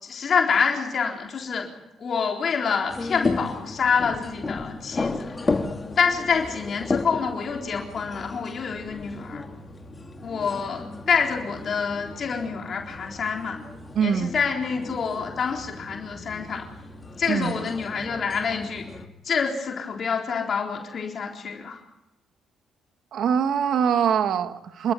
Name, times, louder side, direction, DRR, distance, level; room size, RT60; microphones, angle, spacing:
voice 1, 0.0-1.7 2.0-5.3 6.0-9.4 10.2-13.6 14.0-16.7 17.2-18.8 19.2-21.8, left 6 dB, 55° left, 1 dB, 3.9 m, -27 dB
sound 1, 2.9-19.1, left 3 dB, 30° left, 2.6 m, -34 dB
voice 2, 13.9-14.3 17.3-17.6 23.1-24.9, right 7 dB, 70° right, 9 dB, 1.6 m, -23 dB
27.5 x 13.5 x 9.8 m, 0.92 s
cardioid pair, 90°, 0 cm